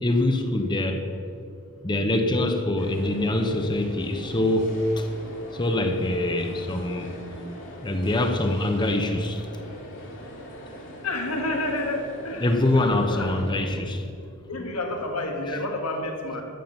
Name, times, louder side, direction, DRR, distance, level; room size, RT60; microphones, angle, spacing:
voice 1, 0.0-1.0 1.8-5.1 5.5-7.1 7.8-9.4 12.4-14.1, left 1 dB, 20° left, 5 dB, 0.8 m, -24 dB
sound 1, 2.8-13.5, equal, 55° left, 2.3 m, -41 dB
voice 2, 11.0-12.5 13.1-13.4 14.5-16.4, left 2 dB, 85° left, 3 dB, 1.8 m, -29 dB
13.0 x 7.5 x 6.7 m, 2.5 s
head